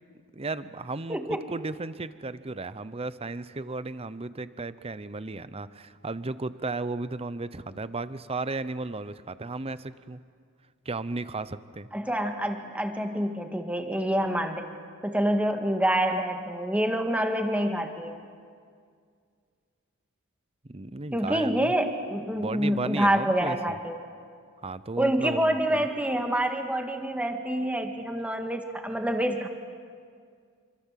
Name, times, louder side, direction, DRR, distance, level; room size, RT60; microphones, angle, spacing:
voice 1, 0.3-10.2 10.8-11.9 20.6-21.7 22.3-23.8 24.6-25.9, right 3 dB, 25° right, 14 dB, 0.7 m, -35 dB
voice 2, 1.1-1.4 11.9-14.7 15.0-18.2 21.1-24.0 25.0-29.5, right 1 dB, 5° right, 4 dB, 1.8 m, -27 dB
27.5 x 25.5 x 7.5 m, 2.2 s
head